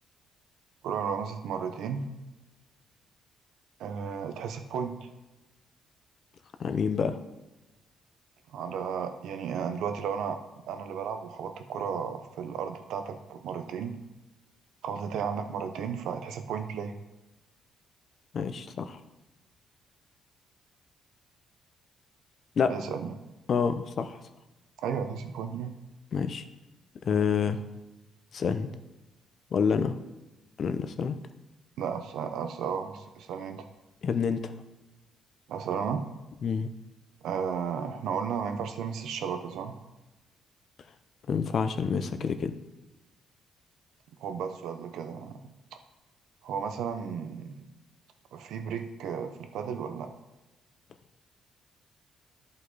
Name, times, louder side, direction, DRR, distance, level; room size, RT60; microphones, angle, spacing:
voice 1, 0.8-2.1 3.8-5.1 8.5-10.4 10.7-14.0 14.8-16.9 22.7-23.1 24.8-25.7 31.8-33.6 35.5-36.0 37.2-39.8 44.2-45.4 46.4-47.7 48.3-50.1, right 7 dB, 80° right, 7 dB, 0.8 m, -34 dB
voice 2, 6.6-7.2 18.3-19.0 22.6-22.7 23.5-24.2 26.1-26.4 27.0-27.6 28.3-28.7 29.5-29.9 30.6-31.2 34.0-34.5 36.4-36.7 41.3-42.5, left 6 dB, 55° left, 10 dB, 0.6 m, -27 dB
11.0 x 5.3 x 4.1 m, 1.0 s
cardioid pair, 90°, 0 cm